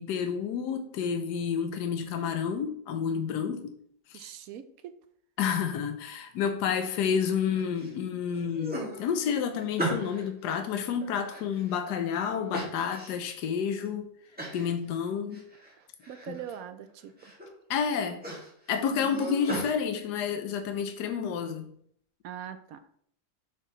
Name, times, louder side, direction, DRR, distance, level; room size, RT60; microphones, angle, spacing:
voice 1, 0.0-3.7 4.1-4.3 5.4-14.0 14.5-15.4 16.3-16.4 17.7-18.2 18.7-21.7, left 7 dB, 85° left, 7 dB, 1.3 m, -30 dB
voice 2, 4.1-5.0 15.8-17.3 18.9-19.4 22.2-22.9, right 9 dB, 70° right, 11 dB, 0.9 m, -42 dB
sound 1, 7.2-7.9 8.3-10.3 10.8-12.0 12.5-13.3 13.8-13.9 14.4-14.7 15.0-15.7 16.0-16.6 17.0-17.5 17.8-19.7, right 1 dB, 5° right, 1.9 m, -37 dB
6.8 x 5.9 x 3.0 m, 0.65 s
omnidirectional pair, 1.7 m